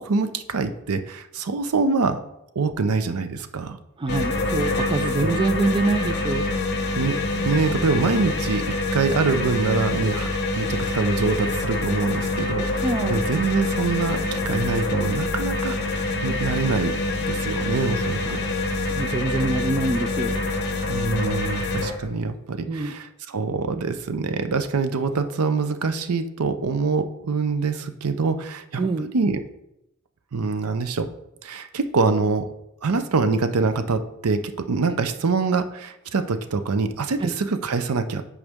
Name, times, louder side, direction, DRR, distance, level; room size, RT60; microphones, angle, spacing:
voice 1, 0.0-2.2 2.6-3.8 5.2-5.3 7.0-7.2 7.4-10.3 10.6-16.9 17.2-18.4 20.9-28.9 29.1-29.4 30.3-31.1 31.4-32.5 32.8-38.2, right 4 dB, 85° right, 10 dB, 0.6 m, -25 dB
voice 2, 4.0-6.5 7.3-7.5 12.8-13.3 18.2-18.5 18.9-20.4 22.7-23.0 28.8-29.1 37.2-37.3, right 3 dB, 20° right, 10 dB, 0.3 m, -25 dB
sound 1, 4.1-21.9, left 2 dB, 50° left, 1.0 m, -26 dB
8.0 x 4.9 x 3.6 m, 0.86 s
head